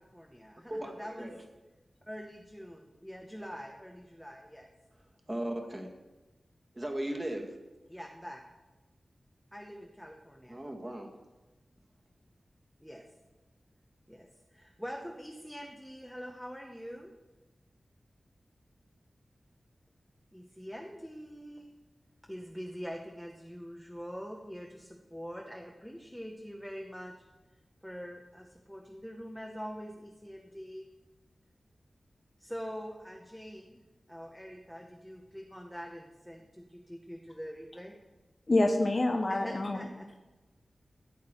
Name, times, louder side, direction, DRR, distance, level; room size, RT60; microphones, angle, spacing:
voice 1, 0.0-1.4 2.1-4.7 7.9-8.4 9.5-10.6 12.8-13.0 14.1-17.1 20.3-21.7 22.3-27.1 27.8-30.9 32.4-38.0 39.3-40.1, equal, ahead, 1 dB, 1.1 m, -44 dB
voice 2, 0.7-1.3 5.3-5.9 6.8-7.5 10.5-11.1, right 1 dB, 25° right, 2 dB, 1.9 m, -36 dB
voice 3, 38.5-39.8, left 2 dB, 40° left, 3 dB, 1.0 m, -27 dB
14.5 x 8.5 x 4.5 m, 1.1 s
wide cardioid pair, 85°, 0 cm